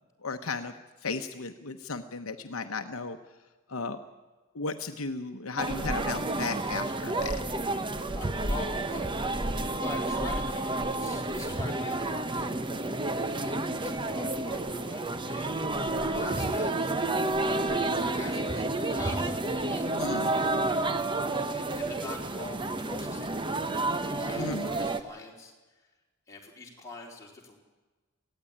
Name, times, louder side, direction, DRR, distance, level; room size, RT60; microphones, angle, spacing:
voice 1, 0.2-0.7 1.0-3.2 3.7-4.0 4.5-7.4 20.0-20.3 24.4-24.7, left 4 dB, 70° left, 6 dB, 1.0 m, -35 dB
sound 1, 5.6-25.0, right 2 dB, 20° right, 0.9 m, -30 dB
voice 2, 8.1-9.1 9.5-12.5 13.4-16.9 17.5-20.0 20.3-20.6 21.5-25.5 26.3-27.6, left 2 dB, 15° left, -3 dB, 4.2 m, -44 dB
18.0 x 15.5 x 10.0 m, 1.2 s
head